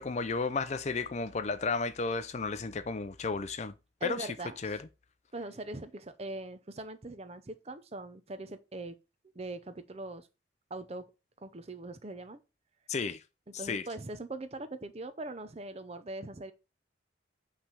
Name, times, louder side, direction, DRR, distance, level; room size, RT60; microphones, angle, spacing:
voice 1, 0.0-3.7 4.0-4.3 4.6-4.8 12.9-13.2 13.6-13.9, left 4 dB, 35° left, 0.4 m, -33 dB
voice 2, 4.0-4.8 5.3-9.0 9.3-10.3 10.7-11.1 11.4-12.4 13.6-16.5, right 2 dB, 35° right, 0.6 m, -41 dB
5.7 x 3.3 x 5.6 m
head